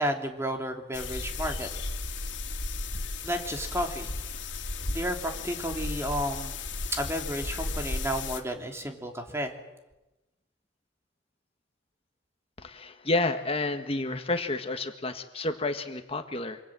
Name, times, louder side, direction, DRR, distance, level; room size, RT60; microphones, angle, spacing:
voice 1, 0.0-1.7 3.2-4.4 4.9-6.5 6.9-9.5, equal, 15° right, 3 dB, 3.2 m, -32 dB
sound 1, 0.9-8.4, left 3 dB, 80° left, 2.9 m, -34 dB
voice 2, 12.6-16.6, left 2 dB, 30° left, 7 dB, 1.7 m, -30 dB
26.5 x 26.0 x 7.7 m, 1.0 s
head